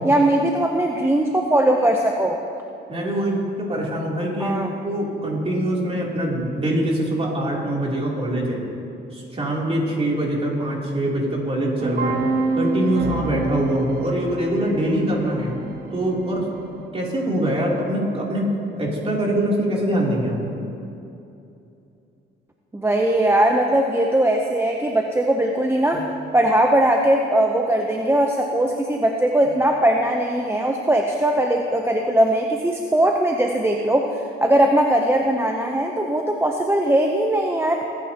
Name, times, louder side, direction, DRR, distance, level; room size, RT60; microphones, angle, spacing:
voice 1, 0.0-2.4 4.4-4.7 22.7-26.1 26.3-37.8, right 1 dB, 10° right, 2 dB, 0.7 m, -20 dB
voice 2, 2.9-4.6 4.8-8.6 9.1-12.2 12.5-15.5 15.9-20.4, right 1 dB, 30° right, -3 dB, 3.2 m, -24 dB
sound 1, 11.8-16.8, right 3 dB, 50° right, 1.4 m, -27 dB
21.0 x 9.5 x 2.9 m, 2.8 s
cardioid pair, 90°, 20 cm